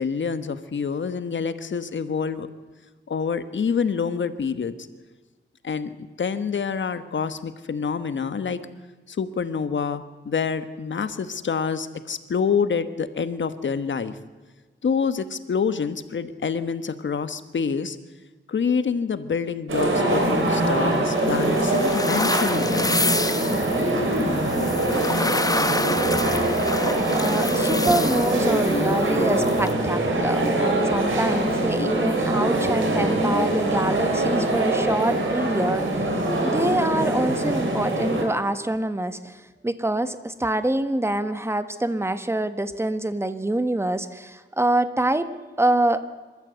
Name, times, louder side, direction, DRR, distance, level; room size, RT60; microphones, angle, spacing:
voice 1, 0.0-2.5 3.1-4.7 5.6-5.9 6.2-8.6 9.1-14.2 14.8-18.0 18.5-22.9, left 6 dB, 70° left, 11 dB, 1.2 m, -27 dB
sound 1, 19.7-38.2, right 1 dB, 85° right, 3.9 m, -23 dB
sound 2, 20.1-29.7, left 2 dB, 20° left, 0.9 m, -29 dB
voice 2, 27.1-36.1 36.4-45.3 45.6-46.0, right 1 dB, 15° right, 11 dB, 1.2 m, -25 dB
25.5 x 13.5 x 8.0 m, 1.3 s
wide cardioid pair, 100°, 20 cm